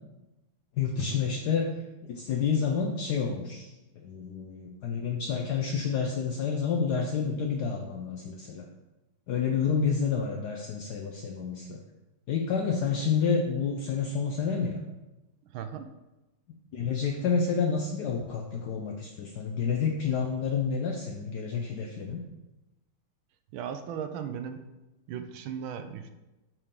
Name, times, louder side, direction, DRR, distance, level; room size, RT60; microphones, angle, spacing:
voice 1, 0.8-1.6 2.0-8.6 9.3-11.8 12.3-14.8 16.7-22.2, left 6 dB, 75° left, 2 dB, 0.9 m, -29 dB
voice 2, 15.5-15.9 23.5-24.6 25.1-26.1, right 8 dB, 75° right, 9 dB, 1.3 m, -37 dB
7.9 x 4.7 x 3.6 m, 1.0 s
omnidirectional pair, 2.3 m